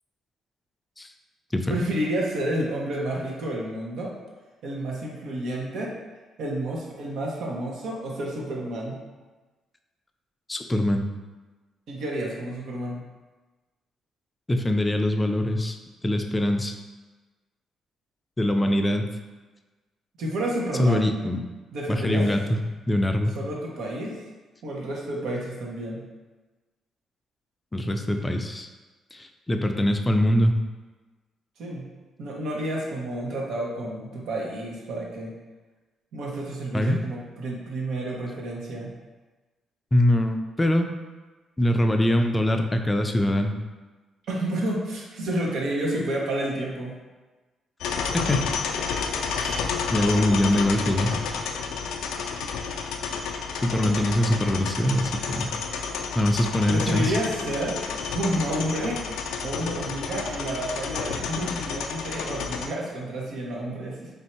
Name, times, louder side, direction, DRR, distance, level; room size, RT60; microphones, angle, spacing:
voice 1, 1.7-4.1 4.6-5.9 6.4-9.0 11.9-13.0 20.2-21.1 21.7-22.2 23.4-24.2 24.6-26.0 31.6-31.9 32.2-35.3 36.1-38.9 44.3-47.0 53.7-54.0 56.7-57.8 58.1-59.0 59.4-64.1, right 1 dB, 75° right, -2 dB, 0.9 m, -30 dB
voice 2, 10.5-11.1 14.5-15.8 16.0-16.7 18.4-19.1 20.8-21.4 21.9-22.6 22.9-23.3 27.7-28.7 29.1-30.6 36.7-37.0 39.9-40.9 41.6-43.6 48.3-48.4 49.4-49.5 49.9-51.1 53.6-55.5 56.2-57.1, left 1 dB, 15° left, 5 dB, 0.4 m, -23 dB
sound 1, 47.8-62.7, left 5 dB, 85° left, 0.3 m, -30 dB
3.4 x 2.7 x 4.3 m, 1.2 s
cardioid pair, 90°, 0 cm